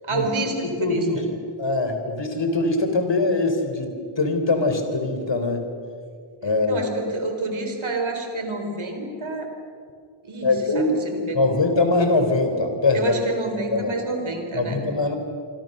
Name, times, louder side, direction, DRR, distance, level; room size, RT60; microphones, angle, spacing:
voice 1, 0.0-1.2 6.7-9.5 10.2-11.6 12.9-14.8, right 2 dB, 70° right, 5 dB, 4.3 m, -28 dB
voice 2, 0.6-1.3 1.6-5.6 6.4-7.1 10.4-10.9 11.3-13.2 13.7-14.0 14.5-15.2, left 2 dB, 60° left, 6 dB, 4.0 m, -22 dB
26.5 x 25.0 x 6.7 m, 2.3 s
wide cardioid pair, 65°, 50 cm